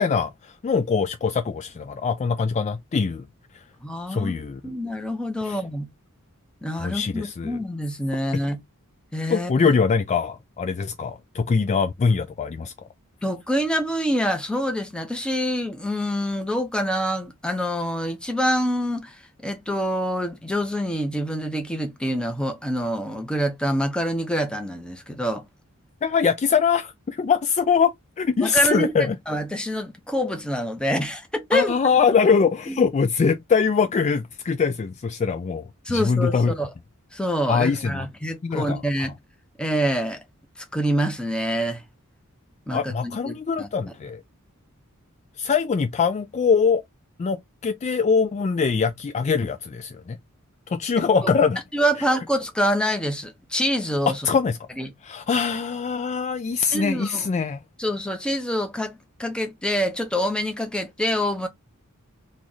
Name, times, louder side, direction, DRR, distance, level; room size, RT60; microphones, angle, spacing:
voice 1, 0.0-3.2 4.1-4.7 5.4-5.6 6.8-7.6 9.3-12.7 26.0-29.2 31.5-36.5 37.5-38.1 38.4-38.8 42.7-44.2 45.4-46.8 47.2-50.2 50.7-51.6 54.2-54.6 55.0-57.6, left 5 dB, 35° left, 0.3 m, -23 dB
voice 2, 3.8-4.4 4.6-5.9 6.6-8.6 9.1-9.5 13.2-19.2 19.4-25.4 28.4-28.9 29.3-31.7 32.7-32.8 35.9-36.7 37.1-39.1 39.6-40.2 40.7-41.8 42.7-43.7 51.7-54.2 54.8-54.9 56.7-57.2 57.8-61.5, equal, 5° left, 0.7 m, -26 dB
3.2 x 2.3 x 3.9 m
head